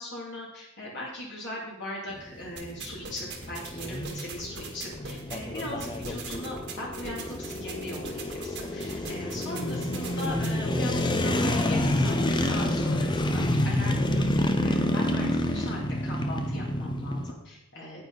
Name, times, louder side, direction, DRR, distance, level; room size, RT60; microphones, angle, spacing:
voice 1, 0.0-18.1, left 1 dB, 55° left, -5 dB, 2.6 m, -39 dB
sound 1, 2.1-17.3, left 1 dB, 20° left, 0.8 m, -28 dB
sound 2, 2.6-10.5, right 4 dB, 55° right, 1.7 m, -42 dB
9.5 x 9.1 x 4.0 m, 0.90 s
head